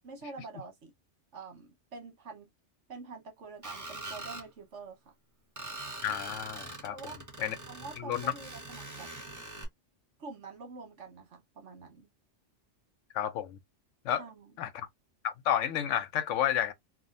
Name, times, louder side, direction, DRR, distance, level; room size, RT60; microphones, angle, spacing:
voice 1, 0.0-0.9 1.3-2.5 2.9-5.1 6.9-7.2 7.7-9.1 10.2-12.1 14.2-14.5, right 4 dB, 75° right, 1.4 m, -46 dB
Screech, 3.6-4.5 5.6-9.6, right 2 dB, 15° right, 0.8 m, -43 dB
voice 2, 6.0-7.0 7.4-7.6 8.0-8.3 13.1-13.6 14.0-14.2 14.6-14.9 15.2-16.7, left 10 dB, 90° left, 1.0 m, -31 dB
3.6 x 2.3 x 2.5 m
omnidirectional pair, 1.2 m